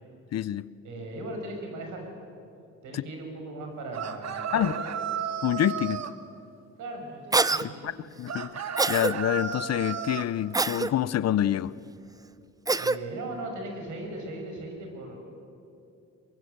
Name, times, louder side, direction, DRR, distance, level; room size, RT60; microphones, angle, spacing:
voice 1, 0.3-0.6 2.9-3.0 4.5-4.7 5.4-6.0 7.6-11.7, left 11 dB, 60° left, 18 dB, 0.7 m, -27 dB
voice 2, 0.8-2.1 2.8-5.1 6.8-7.2 7.5-7.9 12.8-15.2, right 2 dB, 75° right, 3 dB, 5.8 m, -38 dB
sound 1, 3.9-6.2 8.3-10.3, right 7 dB, 60° right, 1.4 m, -33 dB
Cough, 7.3-7.6 8.8-9.1 10.5-10.9 12.7-13.0, right 3 dB, 10° right, 0.5 m, -24 dB
22.5 x 22.5 x 8.0 m, 2.6 s
cardioid pair, 90°, 30 cm